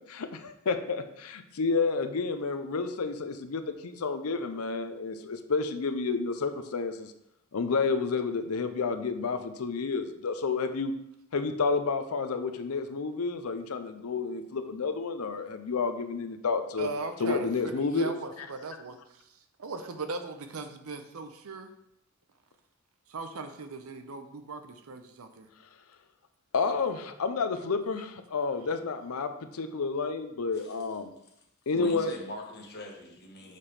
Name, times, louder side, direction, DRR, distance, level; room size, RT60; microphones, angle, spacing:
voice 1, 0.1-7.1 7.5-10.9 11.3-16.9 17.2-18.1 26.5-31.1 31.7-32.1, left 4 dB, 85° left, 9 dB, 0.6 m, -30 dB
voice 2, 16.8-19.3 19.6-21.7 23.1-25.5, right 3 dB, 70° right, 8 dB, 0.7 m, -38 dB
voice 3, 31.7-33.6, left 1 dB, 50° left, 1 dB, 1.3 m, -42 dB
6.6 x 5.6 x 3.3 m, 0.79 s
head